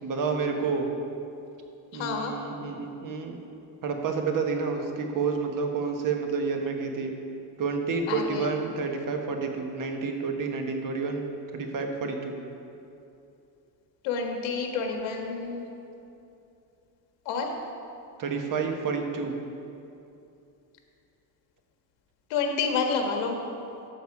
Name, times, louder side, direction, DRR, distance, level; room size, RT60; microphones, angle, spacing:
voice 1, 0.0-0.9 1.9-3.4 3.8-7.1 7.6-11.2 11.5-12.4 18.2-19.4, right 4 dB, 45° right, 3 dB, 1.4 m, -29 dB
voice 2, 1.9-2.3 8.1-8.5 14.0-15.7 17.2-17.5 22.3-23.3, left 5 dB, 90° left, 2 dB, 1.6 m, -29 dB
12.5 x 7.2 x 4.8 m, 2.7 s
cardioid pair, 125°, 44 cm